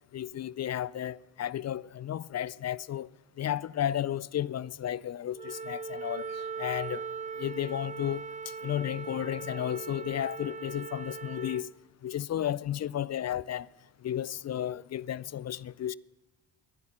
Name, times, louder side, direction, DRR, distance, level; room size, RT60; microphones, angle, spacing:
voice 1, 0.1-3.1 3.4-7.0 7.4-11.7 12.0-13.7 14.0-16.0, left 11 dB, 40° left, 0.4 m, -33 dB
Wind instrument woodwind instrument, 5.3-11.7, right 5 dB, 15° right, 0.6 m, -40 dB
22.0 x 9.6 x 6.1 m
hypercardioid pair, 45°, 45 cm